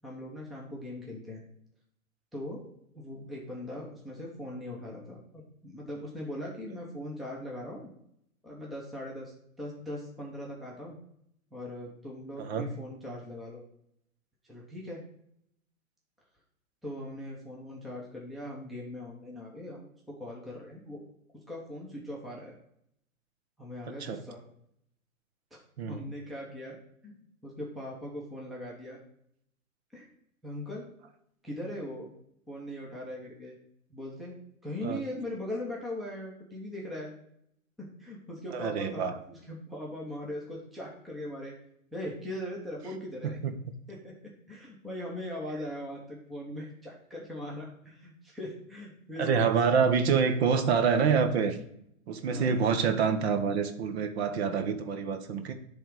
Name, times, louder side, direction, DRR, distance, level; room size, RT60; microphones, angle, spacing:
voice 1, 0.0-1.4 2.3-7.9 8.4-11.0 11.5-13.7 14.5-15.0 16.8-21.0 21.5-22.5 23.6-24.4 25.9-26.8 27.0-29.0 29.9-30.1 30.4-30.9 31.4-32.1 32.5-33.6 33.9-37.1 37.8-41.6 41.9-43.4 43.9-49.5 52.2-52.6, left 1 dB, ahead, -3 dB, 0.7 m, -40 dB
voice 2, 38.5-39.1 43.2-43.5 49.2-51.6 52.1-55.5, right 6 dB, 50° right, 8 dB, 1.0 m, -26 dB
10.5 x 3.5 x 4.7 m, 0.74 s
hypercardioid pair, 145°, 42 cm